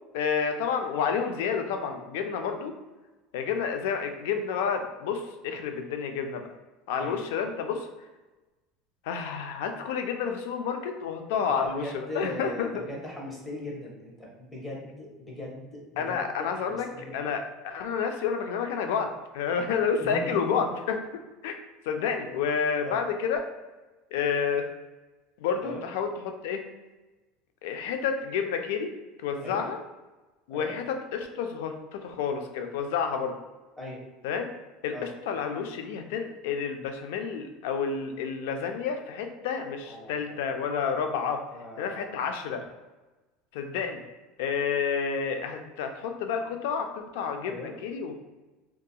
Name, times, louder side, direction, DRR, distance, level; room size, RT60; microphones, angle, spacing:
voice 1, 0.1-2.7 3.3-6.5 6.9-7.9 9.0-12.8 16.0-21.0 21.4-21.5 21.9-23.4 24.1-24.7 25.4-26.6 27.6-28.9 29.2-29.8 30.5-33.4 34.2-34.5 34.8-41.4 41.8-42.7 43.5-44.0 44.4-48.2, left 6 dB, 80° left, 5 dB, 0.3 m, -30 dB
voice 2, 11.6-17.2 20.0-20.3 22.8-23.0 25.6-25.8 29.4-29.6 30.5-30.7 33.8-34.0 34.9-35.1 39.8-40.7 41.5-42.2 47.5-47.7, left 1 dB, 10° left, -3 dB, 0.7 m, -40 dB
2.7 x 2.3 x 2.3 m, 1.2 s
supercardioid pair, 145°, 0 cm